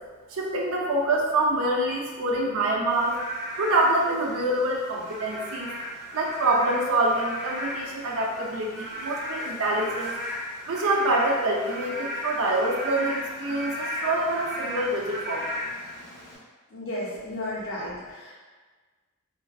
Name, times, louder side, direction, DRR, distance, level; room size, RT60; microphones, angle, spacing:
voice 1, 0.3-3.2 3.6-5.7 6.1-10.1 10.7-15.6, right 2 dB, 80° right, -1 dB, 0.5 m, -26 dB
Frog / Rain, 2.9-16.4, equal, ahead, 0.7 m, -36 dB
voice 2, 16.7-18.3, left 1 dB, 80° left, -8 dB, 0.9 m, -33 dB
2.5 x 2.3 x 2.3 m, 1.4 s
head